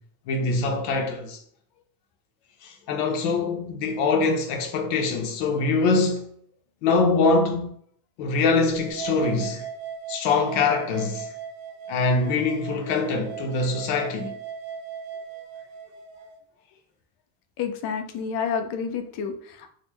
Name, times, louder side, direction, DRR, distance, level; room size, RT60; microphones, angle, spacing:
voice 1, 0.3-1.4 2.6-6.3 6.8-7.7 8.2-9.7 10.1-11.3 11.9-14.3, left 3 dB, 85° left, 0.8 m, -23 dB
sound 1, 8.7-16.3, right 7 dB, 85° right, 0.9 m, -38 dB
voice 2, 17.6-19.7, left 6 dB, 50° left, 0.5 m, -29 dB
3.9 x 2.0 x 3.1 m
cardioid pair, 155°, 50 cm